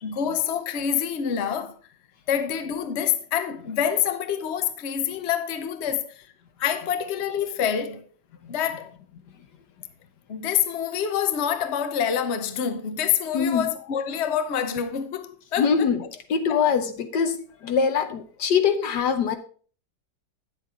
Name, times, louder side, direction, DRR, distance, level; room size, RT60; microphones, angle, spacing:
voice 1, 0.0-1.8 2.3-6.3 6.6-8.1 8.5-8.9 10.3-15.9, left 8 dB, 45° left, 0.9 m, -26 dB
voice 2, 13.3-13.7 15.6-19.4, left 6 dB, 70° left, 1.3 m, -23 dB
9.2 x 8.1 x 3.7 m
omnidirectional pair, 2.0 m